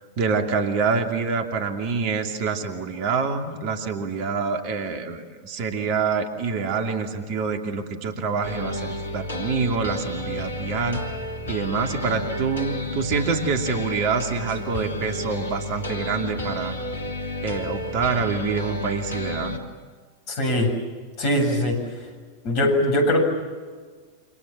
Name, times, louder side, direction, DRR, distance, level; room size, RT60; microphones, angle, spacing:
voice 1, 0.2-11.0 11.5-16.7 17.4-19.6, right 5 dB, 45° right, 5 dB, 2.6 m, -26 dB
sound 1, 8.4-19.6, left 1 dB, 70° left, 2.9 m, -31 dB
voice 2, 20.3-20.7 21.2-21.8 22.4-23.2, left 1 dB, 45° left, 5 dB, 7.5 m, -21 dB
28.5 x 25.5 x 7.5 m, 1.5 s
figure-of-eight pair, 90°, 0 cm